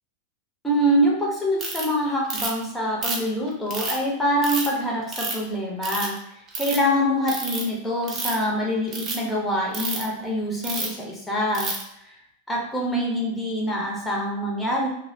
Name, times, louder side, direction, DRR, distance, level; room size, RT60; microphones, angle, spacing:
voice 1, 0.6-6.2 6.6-11.8 12.1-12.2 12.5-14.9, equal, 10° left, -3 dB, 0.7 m, -25 dB
Ratchet pawl, 1.6-1.8 2.3-2.6 3.0-4.0 4.4-4.7 5.1-5.4 5.8-6.2 6.5-6.8 7.3-7.6 8.0-8.4 8.9-9.2 9.7-10.0 10.6-11.0 11.5-11.8, right 3 dB, 30° right, 0.6 m, -29 dB
2.5 x 2.1 x 2.5 m, 0.78 s
figure-of-eight pair, 90°, 0 cm